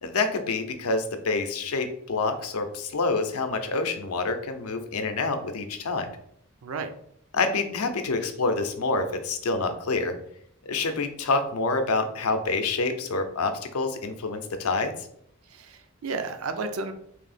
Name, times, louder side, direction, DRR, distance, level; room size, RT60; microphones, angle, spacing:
voice 1, 0.0-6.1 7.3-10.2 10.7-14.9, left 3 dB, 80° left, 7 dB, 0.5 m, -27 dB
voice 2, 6.6-6.9 15.5-16.9, right 4 dB, 70° right, 8 dB, 0.4 m, -32 dB
3.1 x 2.7 x 4.1 m, 0.70 s
head